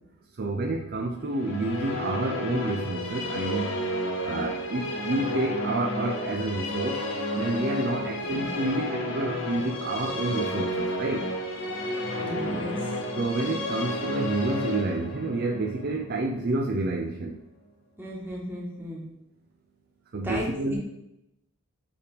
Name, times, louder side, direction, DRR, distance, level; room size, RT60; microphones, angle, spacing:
voice 1, 0.4-3.8 4.2-7.0 7.3-11.2 13.2-17.4 20.1-20.7, right 2 dB, 45° right, 1 dB, 0.5 m, -29 dB
Musical instrument, 1.3-16.7, left 1 dB, 60° left, 1.3 m, -32 dB
voice 2, 8.2-8.5 11.9-13.0 18.0-19.0 20.2-20.8, equal, 10° right, -3 dB, 1.5 m, -35 dB
7.0 x 3.5 x 5.0 m, 0.85 s
head